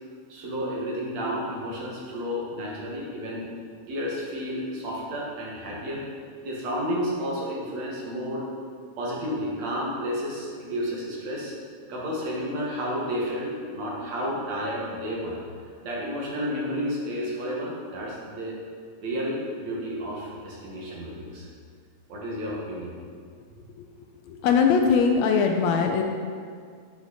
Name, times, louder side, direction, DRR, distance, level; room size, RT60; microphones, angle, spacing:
voice 1, 0.3-3.5 3.9-6.0 6.4-8.5 9.0-11.5 11.9-15.4 15.8-18.5 19.0-21.5 22.1-23.0, equal, 65° right, -4 dB, 2.9 m, -31 dB
voice 2, 24.3-26.0, left 5 dB, 75° left, 3 dB, 1.7 m, -21 dB
9.1 x 7.9 x 4.2 m, 2.1 s
omnidirectional pair, 3.4 m